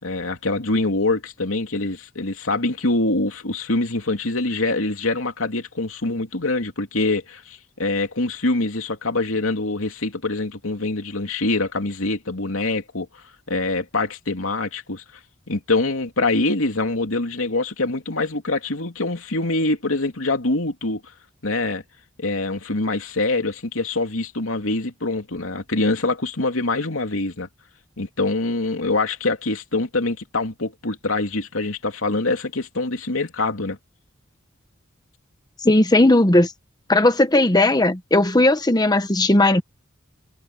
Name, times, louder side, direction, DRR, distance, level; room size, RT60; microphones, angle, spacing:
voice 1, 0.0-13.1 13.5-15.0 15.5-21.0 21.4-21.8 22.2-27.5 28.0-33.8, left 2 dB, 90° left, 2.9 m, -24 dB
voice 2, 35.6-36.5 36.9-39.6, left 2 dB, 20° left, 1.1 m, -16 dB
head